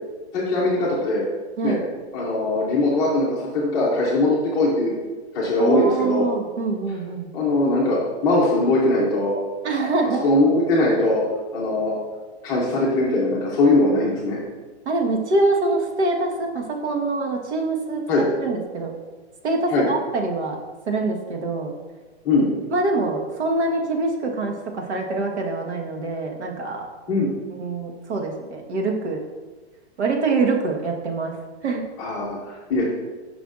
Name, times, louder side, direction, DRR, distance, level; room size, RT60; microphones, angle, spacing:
voice 1, 0.3-1.3 1.6-1.8 2.1-4.9 5.3-6.3 7.3-9.3 10.2-11.2 11.5-11.9 12.4-14.4 18.1-18.2 19.7-19.9 22.2-22.5 27.1-27.3 32.0-32.8, left 2 dB, 10° left, -5 dB, 0.6 m, -20 dB
voice 2, 5.6-7.3 9.6-10.3 14.8-18.9 19.4-20.6 20.9-21.7 22.7-26.9 27.6-29.2 30.0-31.4 31.6-31.8, right 3 dB, 85° right, 1 dB, 1.5 m, -24 dB
9.4 x 5.7 x 2.5 m, 1.3 s
hypercardioid pair, 175°, 33 cm